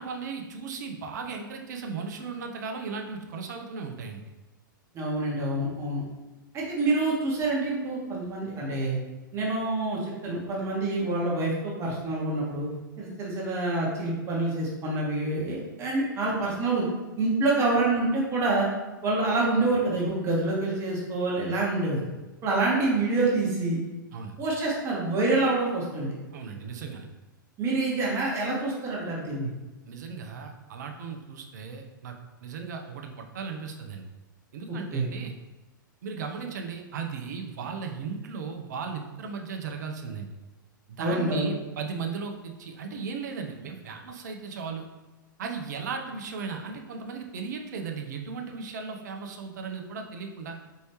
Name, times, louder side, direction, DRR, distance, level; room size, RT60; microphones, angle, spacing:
voice 1, 0.0-4.2 24.1-24.4 26.3-27.1 29.9-32.2 32.4-34.1 34.5-35.4 36.0-40.3 40.9-44.8 45.4-50.6, right 5 dB, 55° right, 3 dB, 0.6 m, -36 dB
voice 2, 4.9-6.0 6.5-9.0 9.3-12.7 13.0-16.8 17.2-18.7 19.0-22.0 22.4-23.8 24.4-26.1 27.6-29.5 34.9-35.1 41.0-41.5, right 2 dB, 25° right, -4 dB, 1.2 m, -27 dB
4.5 x 3.1 x 2.9 m, 1.1 s
figure-of-eight pair, 105°, 11 cm